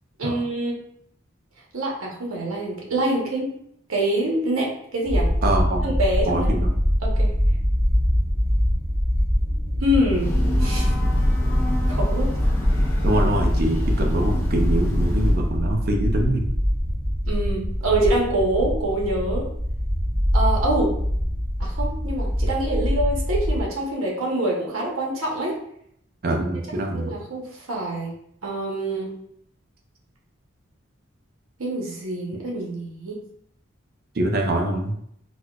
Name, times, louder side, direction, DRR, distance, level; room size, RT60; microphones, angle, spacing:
voice 1, 0.2-0.7 1.7-3.5 3.9-5.3 5.8-6.6 7.0-7.3 9.8-10.3 10.6-10.9 11.9-12.3 17.3-19.5 20.3-20.9 21.6-25.5 26.9-28.1 28.4-29.1 31.6-33.2, right 1 dB, 80° right, -3 dB, 0.9 m, -25 dB
sound 1, 5.0-23.6, equal, 10° right, 0.8 m, -24 dB
voice 2, 5.4-6.0 6.3-6.8 13.0-16.5 26.2-27.1 34.1-34.9, right 1 dB, 45° right, 2 dB, 0.5 m, -24 dB
Breathing / Train, 10.0-15.5, left 1 dB, 10° left, 0.4 m, -24 dB
4.1 x 2.2 x 2.3 m, 0.69 s
head